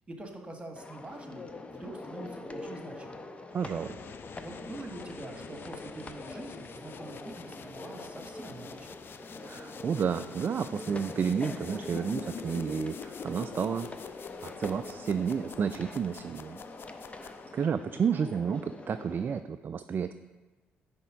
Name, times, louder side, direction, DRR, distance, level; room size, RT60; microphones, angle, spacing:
voice 1, 0.1-3.3 4.4-8.9, right 2 dB, 20° right, 3 dB, 1.7 m, -45 dB
sound 1, 0.8-19.4, left 2 dB, 25° left, 0.8 m, -44 dB
sound 2, 3.5-17.8, left 6 dB, 50° left, 0.4 m, -46 dB
voice 2, 3.5-4.0 9.4-14.1 14.4-16.6 17.2-20.1, right 7 dB, 40° right, 10 dB, 0.3 m, -31 dB
9.8 x 3.5 x 5.0 m, 1.3 s
hypercardioid pair, 45°, 5 cm